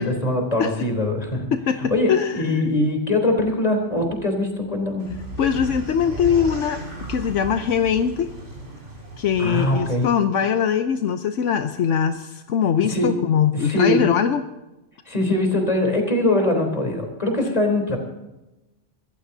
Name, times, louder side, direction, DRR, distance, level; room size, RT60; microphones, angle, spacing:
voice 1, 0.0-1.5 1.8-5.0 9.4-10.1 12.9-13.1 13.5-14.0 15.1-18.0, left 1 dB, 30° left, 3 dB, 3.8 m, -22 dB
voice 2, 1.5-2.6 5.4-6.8 7.1-8.3 9.2-14.4, left 8 dB, 80° left, 8 dB, 1.1 m, -22 dB
sound 1, 5.0-10.1, right 2 dB, 75° right, 4.3 m, -35 dB
25.0 x 15.0 x 2.8 m, 1.0 s
omnidirectional pair, 1.3 m